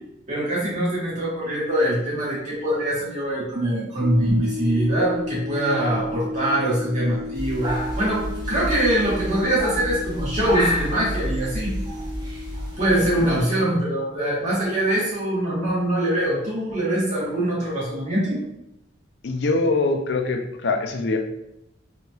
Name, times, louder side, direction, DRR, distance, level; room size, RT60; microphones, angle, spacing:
voice 1, 0.3-11.8 12.8-18.4, right 1 dB, 40° right, -8 dB, 1.1 m, -23 dB
sound 1, 4.0-13.1, equal, 85° right, 0.3 m, -33 dB
sound 2, 7.3-13.4, equal, 20° right, 0.5 m, -30 dB
voice 2, 19.2-21.2, left 3 dB, 60° left, 4 dB, 0.4 m, -23 dB
2.9 x 2.7 x 2.3 m, 0.85 s
head